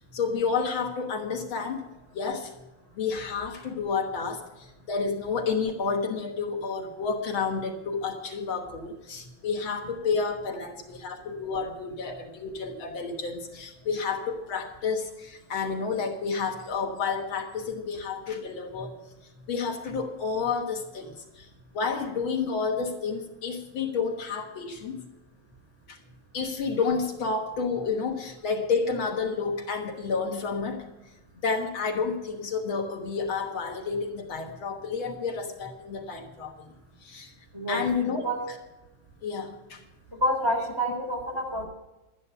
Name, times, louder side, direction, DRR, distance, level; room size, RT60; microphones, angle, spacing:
voice 1, 0.1-1.8 2.1-2.5 3.0-19.0 19.5-21.5 21.7-25.0 25.9-26.0 26.3-30.9 31.4-36.5 37.0-37.3 37.7-38.2 39.2-39.8, left 5 dB, 75° left, 3 dB, 2.2 m, -30 dB
voice 2, 40.2-41.7, equal, 10° right, -1 dB, 3.7 m, -27 dB
12.5 x 9.8 x 5.7 m, 1.0 s
omnidirectional pair, 2.3 m